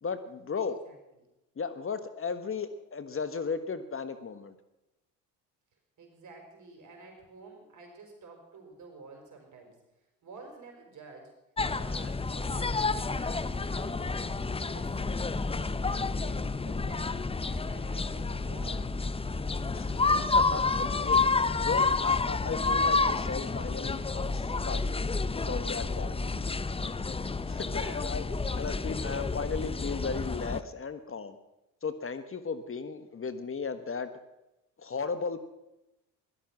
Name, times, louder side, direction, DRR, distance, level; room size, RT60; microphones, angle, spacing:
voice 1, 0.0-0.8 1.6-4.5 19.7-21.2 21.6-24.8 25.5-26.3 27.5-28.2 28.5-31.4 31.8-34.1 34.8-35.4, left 5 dB, 35° left, 11 dB, 1.5 m, -35 dB
voice 2, 0.5-1.2 6.0-11.4 11.6-14.4 14.7-18.9 27.5-28.1, right 3 dB, 50° right, 2 dB, 5.2 m, -51 dB
sound 1, 11.6-30.6, left 3 dB, 15° left, 0.7 m, -29 dB
16.5 x 13.0 x 6.1 m, 0.93 s
supercardioid pair, 70°, 39 cm